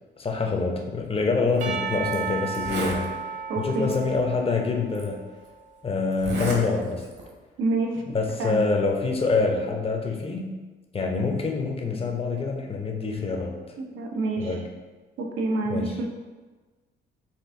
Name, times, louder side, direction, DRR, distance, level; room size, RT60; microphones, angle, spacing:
voice 1, 0.2-3.1 3.6-5.2 5.8-7.1 8.1-10.5 10.9-13.6 14.4-14.7 15.7-16.0, left 4 dB, 30° left, 2 dB, 0.7 m, -26 dB
Zipper (clothing), 1.5-1.6 2.1-2.2 2.5-3.0 3.9-4.0 4.9-5.0 6.1-6.6 7.0-7.3, right 2 dB, 55° right, 1.0 m, -31 dB
Percussion / Church bell, 1.6-5.8, right 6 dB, 40° right, 0.7 m, -34 dB
voice 2, 3.5-3.9 7.6-8.0 8.4-8.7 13.8-14.6 15.2-16.0, right 2 dB, 85° right, 2 dB, 0.7 m, -27 dB
4.4 x 2.5 x 3.6 m, 1.3 s
cardioid pair, 90°, 20 cm